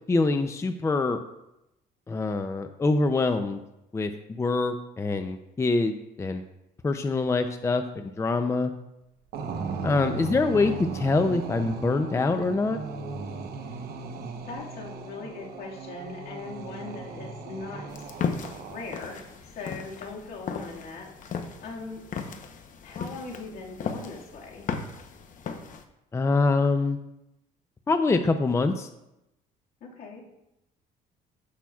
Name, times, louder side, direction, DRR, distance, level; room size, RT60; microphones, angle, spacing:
voice 1, 0.1-1.2 2.1-3.6 3.9-4.1 4.4-6.4 6.8-8.7 9.8-12.8 26.1-27.0 27.9-28.9, left 3 dB, 15° left, 8 dB, 0.5 m, -25 dB
sound 1, 9.3-19.2, right 4 dB, 65° right, 0.9 m, -37 dB
voice 2, 10.0-10.3 13.6-13.7 14.3-18.1 18.7-22.0 22.8-24.7 29.8-30.3, left 3 dB, 70° left, -2 dB, 1.9 m, -40 dB
sound 2, 17.9-25.8, left 6 dB, 50° left, 0.8 m, -36 dB
15.0 x 5.7 x 2.4 m, 0.88 s
cardioid pair, 110°, 17 cm